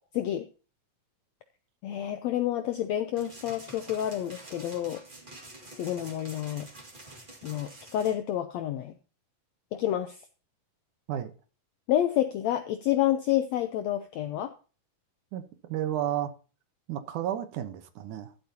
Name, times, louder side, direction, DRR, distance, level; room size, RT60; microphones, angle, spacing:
voice 1, 0.1-0.5 1.8-5.0 5.8-6.7 7.4-8.9 9.7-10.2 11.9-14.5, left 12 dB, 80° left, 1.5 m, -29 dB
sound 1, 3.2-8.1, right 2 dB, 20° right, 1.4 m, -48 dB
voice 2, 15.3-16.3 16.9-18.3, right 11 dB, 75° right, 2.4 m, -32 dB
13.5 x 11.5 x 2.8 m
omnidirectional pair, 3.8 m